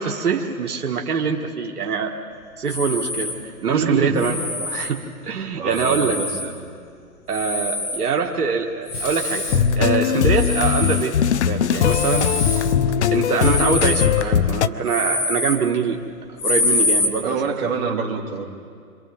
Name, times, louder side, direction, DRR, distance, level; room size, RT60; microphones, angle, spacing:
voice 1, 0.0-2.2 2.6-6.2 7.3-9.5 9.7-12.3 13.1-16.0 16.4-17.4, right 5 dB, 80° right, 1 dB, 1.7 m, -24 dB
sound 1, 2.7-3.4 4.2-5.0 5.7-6.5 7.3-8.1 8.8-9.6 10.3-11.1 11.8-12.6 13.4-14.1 14.8-15.6 16.4-17.1, left 2 dB, 20° left, 1.7 m, -25 dB
voice 2, 3.7-4.2 5.6-6.5 17.2-18.5, right 6 dB, 40° right, -1 dB, 2.6 m, -25 dB
Sink (filling or washing), 8.9-10.5 11.7-13.9, left 2 dB, 90° left, 2.0 m, -34 dB
sound 2, 9.5-14.7, left 9 dB, 50° left, 0.5 m, -20 dB
28.5 x 26.0 x 3.5 m, 2.2 s
hypercardioid pair, 150°, 45 cm